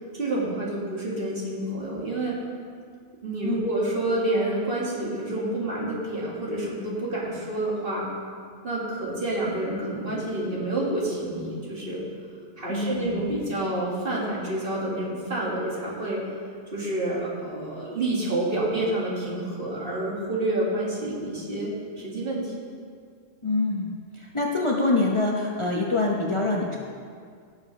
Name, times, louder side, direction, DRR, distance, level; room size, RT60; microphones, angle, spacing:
voice 1, 0.1-2.3 3.2-8.1 8.6-12.0 12.6-16.2 16.7-22.5, right 1 dB, 50° right, -5 dB, 2.3 m, -28 dB
voice 2, 12.7-13.2 23.4-26.8, left 2 dB, 30° left, -2 dB, 0.8 m, -25 dB
17.0 x 6.9 x 3.3 m, 2.1 s
omnidirectional pair, 1.2 m